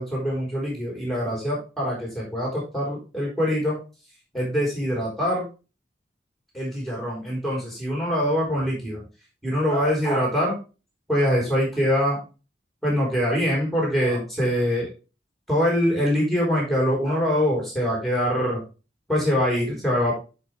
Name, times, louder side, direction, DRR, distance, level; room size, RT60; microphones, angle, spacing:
voice 1, 0.0-3.8 4.3-5.5 6.5-9.0 9.4-10.6 11.1-12.2 12.8-14.9 15.5-18.6 19.1-20.1, equal, ahead, -3 dB, 3.9 m, -24 dB
10.5 x 4.9 x 3.2 m, 0.32 s
head